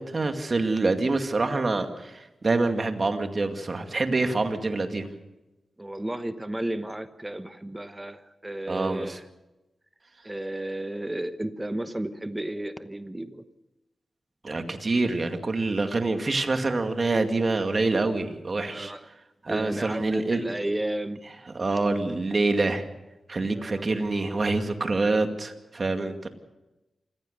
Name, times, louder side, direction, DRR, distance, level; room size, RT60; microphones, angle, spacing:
voice 1, 0.0-5.1 8.7-9.2 14.4-18.9 19.4-20.4 21.5-22.8 23.3-26.3, right 3 dB, 45° right, 6 dB, 2.3 m, -26 dB
voice 2, 5.8-9.2 10.2-13.4 18.6-19.1 19.5-21.2 23.5-23.8, right 1 dB, 15° right, 10 dB, 1.1 m, -33 dB
27.0 x 15.5 x 6.7 m, 1.0 s
cardioid pair, 70°, 0 cm